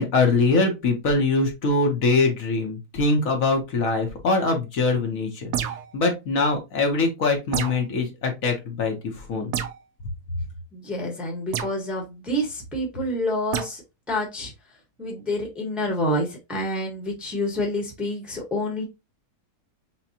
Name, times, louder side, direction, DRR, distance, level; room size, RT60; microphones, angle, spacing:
voice 1, 0.0-9.5, left 3 dB, 60° left, 2 dB, 1.2 m, -23 dB
sound 1, 5.5-6.0 7.5-7.9 9.5-9.8 11.5-11.8 13.5-13.7, right 9 dB, 75° right, 1.1 m, -28 dB
voice 2, 10.7-13.8 14.1-18.8, left 1 dB, ahead, 0 dB, 0.9 m, -28 dB
5.9 x 2.2 x 2.7 m, 0.24 s
omnidirectional pair, 1.7 m